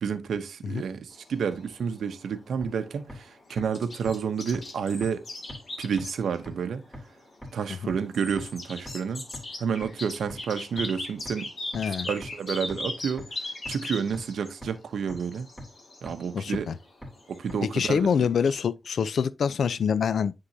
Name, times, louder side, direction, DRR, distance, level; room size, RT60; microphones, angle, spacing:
voice 1, 0.0-5.2 5.8-6.8 7.5-9.2 9.6-11.5 12.0-13.3 13.7-15.5 16.0-16.7 17.3-18.3, right 6 dB, 90° right, 0.7 m, -30 dB
sound 1, 1.1-18.6, left 2 dB, 45° left, 1.8 m, -40 dB
sound 2, 2.6-2.7 3.1-3.2 3.6-3.7 4.1-4.2 4.5-4.6 5.0-5.1 5.5-5.6 6.0-6.1 6.5-6.6 6.9-7.0 7.4-7.5 7.9-8.0 8.4-8.5 8.9-9.0 9.3-9.4 9.8-9.9 10.3-10.4 10.8-10.9 11.3-11.4 11.7-11.8 12.2-12.3 12.7-12.8 13.2-13.3 13.7-13.8 14.1-14.2 14.6-14.7 15.1-15.2 15.6-15.7 16.1-16.2 16.5-16.6 17.0-17.1 17.5-17.6, equal, 10° left, 2.6 m, -39 dB
voice 2, 11.7-12.1 16.3-16.7 17.6-20.3, left 7 dB, 75° left, 0.4 m, -25 dB
9.8 x 3.7 x 2.7 m
wide cardioid pair, 125°, 0 cm